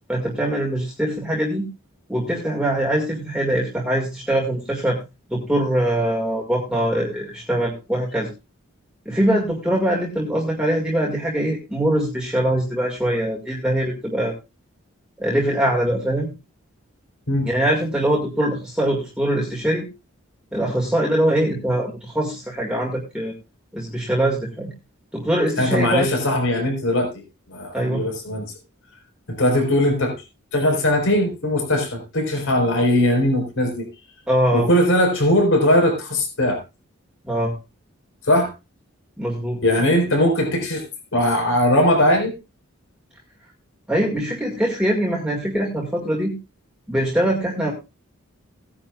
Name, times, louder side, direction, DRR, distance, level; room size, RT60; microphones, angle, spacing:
voice 1, 0.1-1.7 2.1-5.0 5.3-8.3 9.1-14.3 15.2-16.3 17.4-19.9 20.5-23.3 23.7-24.7 25.1-26.1 27.7-28.1 34.3-34.7 37.2-37.6 39.2-39.6 43.9-46.4 46.9-47.7, right 1 dB, 5° right, -2 dB, 2.0 m, -22 dB
voice 2, 25.6-27.1 27.5-28.5 29.3-30.2 30.5-33.9 34.5-36.6 38.3-38.5 39.6-40.8 41.1-42.3, left 1 dB, 65° left, 3 dB, 4.6 m, -19 dB
17.5 x 10.0 x 2.4 m, 0.26 s
head